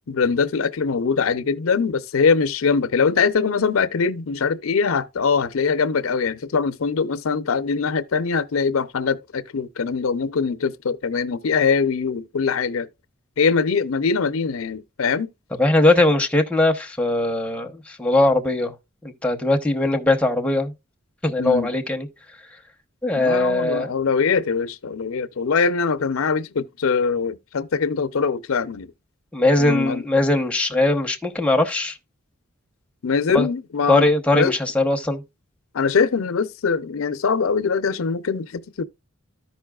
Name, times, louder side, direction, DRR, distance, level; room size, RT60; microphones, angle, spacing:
voice 1, 0.0-12.9 13.4-15.3 21.4-21.7 23.1-28.9 29.6-30.0 33.0-34.1 34.3-34.5 35.7-38.8, left 5 dB, 90° left, 0.5 m, -22 dB
voice 2, 15.6-18.7 19.0-20.7 21.2-22.1 23.0-23.9 29.3-32.0 33.3-33.5 33.9-35.2, left 2 dB, 5° left, 0.9 m, -20 dB
13.5 x 5.5 x 2.3 m
head